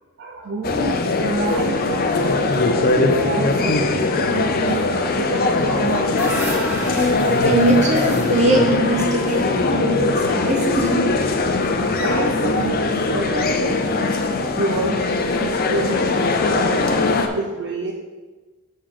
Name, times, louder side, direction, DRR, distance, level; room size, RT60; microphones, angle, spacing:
voice 1, 0.2-6.1 7.8-7.9 8.2-8.3 10.1-10.3 11.8-13.9 14.2-17.9, right 2 dB, 55° right, 1 dB, 0.5 m, -28 dB
sound 1, 0.6-17.3, left 3 dB, 45° left, 0.6 m, -20 dB
sound 2, 5.9-9.9, equal, 10° right, 1.7 m, -32 dB
voice 2, 7.4-11.0, right 1 dB, 30° right, 0 dB, 1.1 m, -20 dB
6.7 x 6.3 x 3.7 m, 1.3 s
head